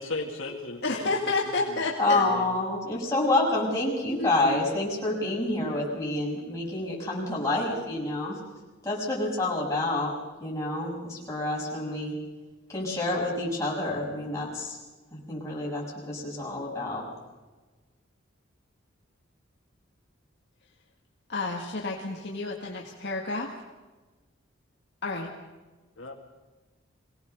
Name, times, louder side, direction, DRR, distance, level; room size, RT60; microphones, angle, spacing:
voice 1, 0.0-2.5 26.0-26.1, left 2 dB, 80° left, 1 dB, 2.4 m, -37 dB
voice 2, 0.8-2.2 4.2-4.6 21.3-23.5 25.0-25.3, left 3 dB, 55° left, -1 dB, 1.8 m, -30 dB
voice 3, 2.0-8.4 8.8-10.1 10.4-12.1 12.7-14.8 15.1-17.0, left 2 dB, 15° left, -4 dB, 6.4 m, -28 dB
23.0 x 18.0 x 6.7 m, 1.2 s
head